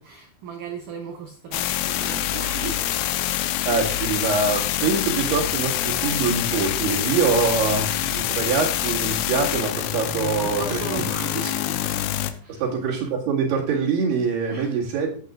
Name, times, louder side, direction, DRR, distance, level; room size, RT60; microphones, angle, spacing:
voice 1, 0.0-3.0 10.4-11.9 12.4-12.6 14.5-14.8, right 4 dB, 80° right, 1.8 m, -36 dB
sound 1, 1.5-12.3, left 12 dB, 90° left, 3.0 m, -26 dB
voice 2, 3.7-10.8 12.5-15.2, right 5 dB, 65° right, 3.9 m, -24 dB
14.0 x 8.2 x 2.4 m
omnidirectional pair, 5.2 m